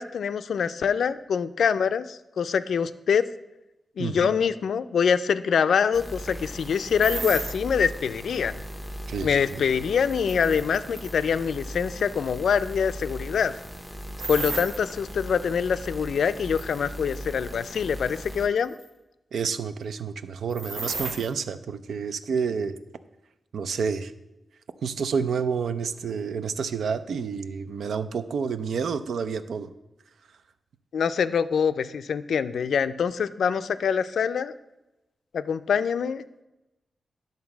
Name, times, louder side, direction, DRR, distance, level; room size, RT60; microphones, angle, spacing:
voice 1, 0.0-3.3 4.0-8.6 9.2-13.5 14.3-18.7 30.9-34.5 35.3-36.4, left 7 dB, 80° left, 13 dB, 0.4 m, -25 dB
voice 2, 4.0-4.3 9.1-9.6 19.3-22.7 23.5-24.1 24.8-29.7, right 6 dB, 80° right, 12 dB, 0.5 m, -29 dB
sound 1, 5.9-18.5, equal, 5° right, 0.6 m, -39 dB
sound 2, 7.0-7.6 9.5-11.2 14.2-14.8 16.6-17.3 17.7-17.8 18.6-18.9 20.5-21.3, right 3 dB, 60° right, 1.1 m, -33 dB
10.5 x 4.0 x 7.1 m, 0.97 s
wide cardioid pair, 165°, 0 cm